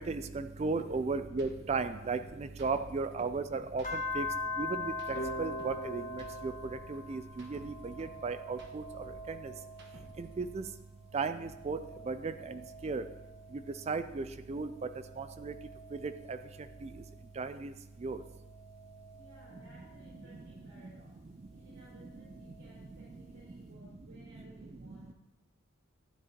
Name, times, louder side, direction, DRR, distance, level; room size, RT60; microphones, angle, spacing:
voice 1, 0.1-3.8 4.1-4.3 4.6-4.8 5.4-6.0 6.4-6.5 6.9-8.8 10.2-10.6 11.1-11.8 12.1-12.3 12.8-13.0 13.9-14.7 15.2-15.5 16.3-16.4 17.4-17.7 18.0-18.2, right 4 dB, 30° right, 10 dB, 0.3 m, -35 dB
sound 1, 0.8-0.9 1.3-1.5 1.8-3.4 3.7-5.8 6.1-8.2 8.5-10.3, right 1 dB, 55° right, 1.2 m, -55 dB
sound 2, 3.8-10.6 11.0-13.9 14.5-17.3 18.0-20.5 21.8-22.9, left 2 dB, 40° left, 1.5 m, -44 dB
sound 3, 5.1-7.9, equal, 60° left, 2.1 m, -44 dB
voice 2, 19.1-21.2 21.5-25.1, equal, 80° right, -8 dB, 4.2 m, -59 dB
12.5 x 9.9 x 2.9 m, 0.97 s
head